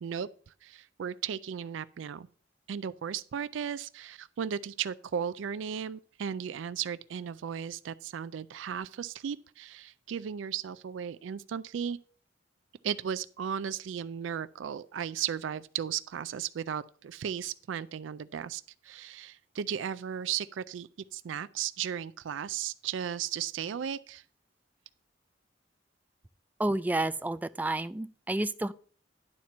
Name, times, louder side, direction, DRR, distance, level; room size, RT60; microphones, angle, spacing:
voice 1, 0.0-2.3 2.7-12.0 12.8-24.2, right 8 dB, 85° right, 0.4 m, -35 dB
voice 2, 26.6-28.7, right 2 dB, 10° right, 0.3 m, -30 dB
11.0 x 4.3 x 6.0 m
head